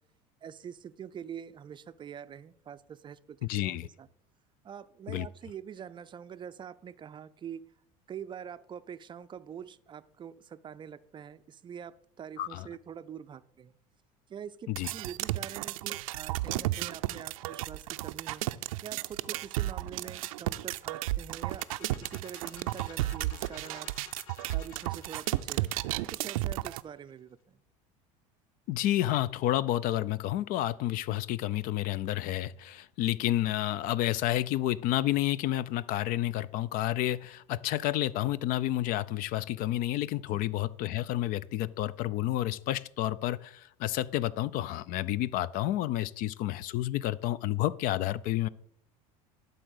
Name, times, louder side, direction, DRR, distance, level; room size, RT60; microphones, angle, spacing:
voice 1, 0.4-4.1 4.6-7.6 8.1-13.8 14.3-24.2 24.5-27.6 40.3-40.4, right 8 dB, 30° right, 0.4 m, -45 dB
voice 2, 3.5-3.9 5.1-5.3 12.4-12.7 14.7-14.9 28.7-48.5, left 14 dB, 55° left, 0.4 m, -30 dB
sound 1, 14.8-26.8, right 17 dB, 85° right, 0.4 m, -33 dB
sound 2, 21.3-27.1, left 8 dB, 85° left, 0.8 m, -54 dB
11.5 x 3.9 x 6.5 m
supercardioid pair, 100°, 17 cm